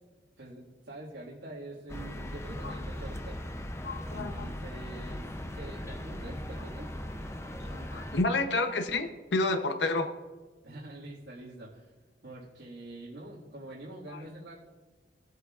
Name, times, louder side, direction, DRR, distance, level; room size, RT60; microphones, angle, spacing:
voice 1, 0.4-3.4 4.1-5.3 5.6-6.9 10.6-11.9 12.2-14.6, right 2 dB, 85° right, -6 dB, 2.0 m, -45 dB
sound 1, 1.9-8.2, left 1 dB, 15° left, 0.5 m, -39 dB
voice 2, 3.8-4.5 7.7-10.1, left 2 dB, 80° left, 8 dB, 0.7 m, -30 dB
18.0 x 7.9 x 2.4 m, 1.3 s
head